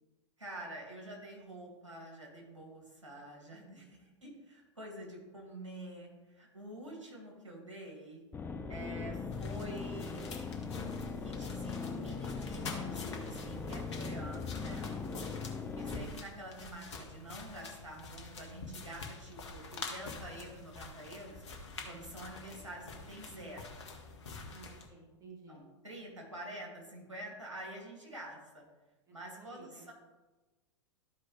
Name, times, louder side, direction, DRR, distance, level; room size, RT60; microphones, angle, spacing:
voice 1, 0.4-8.2 8.7-10.3 10.7-14.9 15.7-21.4 21.9-23.8 25.5-28.6 29.1-29.9, right 1 dB, 80° right, -1 dB, 2.3 m, -47 dB
voice 2, 3.5-4.1 15.2-15.7 24.5-25.6 29.1-29.9, right 4 dB, 20° right, -1 dB, 1.5 m, -55 dB
sound 1, 8.3-16.1, left 4 dB, 15° left, 0.6 m, -40 dB
sound 2, 9.3-24.9, left 3 dB, 65° left, 1.3 m, -47 dB
12.5 x 4.8 x 3.3 m, 1.2 s
figure-of-eight pair, 95°, 16 cm